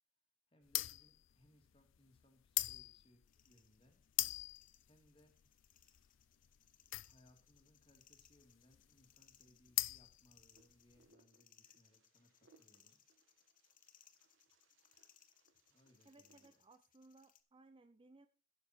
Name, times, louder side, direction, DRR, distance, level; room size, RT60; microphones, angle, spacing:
voice 1, 0.5-4.0 4.8-5.3 7.0-13.0 15.7-16.6, left 1 dB, 30° left, 3 dB, 2.3 m, -70 dB
sound 1, 0.7-11.0, left 18 dB, 80° left, 0.4 m, -42 dB
sound 2, 3.3-17.4, left 10 dB, 45° left, 0.9 m, -70 dB
Wind, 10.5-16.6, right 3 dB, 85° right, 1.5 m, -74 dB
voice 2, 16.0-18.3, right 2 dB, 25° right, 11 dB, 0.5 m, -63 dB
12.0 x 6.8 x 4.3 m, 0.37 s
head